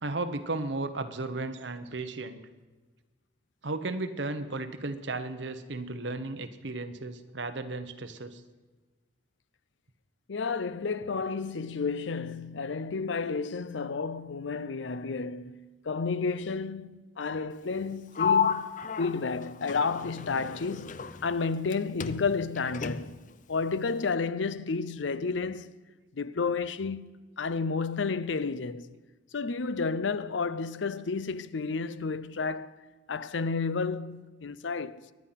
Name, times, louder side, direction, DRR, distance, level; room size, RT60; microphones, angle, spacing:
voice 1, 0.0-2.4 3.6-8.4, right 2 dB, 75° right, 1.2 m, -34 dB
voice 2, 10.3-18.7 19.0-23.1 23.5-25.7 26.1-28.9 29.3-32.8 33.1-35.1, left 4 dB, 85° left, 0.6 m, -31 dB
Sliding door, 18.1-21.7 22.0-23.3, left 6 dB, 45° left, 0.6 m, -32 dB
23.0 x 10.0 x 5.8 m
head